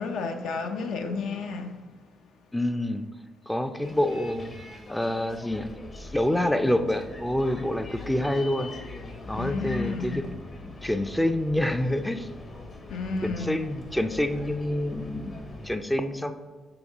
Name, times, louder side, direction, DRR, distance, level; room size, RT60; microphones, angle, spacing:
voice 1, 0.0-1.8 9.3-10.2 12.9-13.6, left 4 dB, 75° left, 0.6 m, -31 dB
voice 2, 2.5-3.0 3.5-4.5 4.9-8.7 9.3-10.2 10.6-12.3 13.2-16.3, left 1 dB, 5° left, 0.4 m, -27 dB
Bus, 3.8-15.7, left 3 dB, 40° left, 0.9 m, -42 dB
7.0 x 4.5 x 3.5 m
cardioid pair, 90°, 0 cm